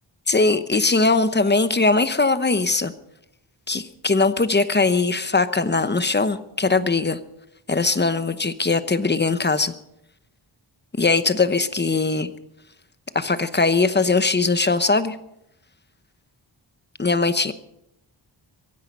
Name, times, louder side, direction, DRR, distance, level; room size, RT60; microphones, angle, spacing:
voice 1, 0.3-2.9 3.7-7.2 7.7-9.7 11.0-12.3 13.1-15.2 17.0-17.5, left 3 dB, 20° left, 12 dB, 0.9 m, -20 dB
24.0 x 10.5 x 5.4 m, 0.81 s
wide cardioid pair, 125°, 46 cm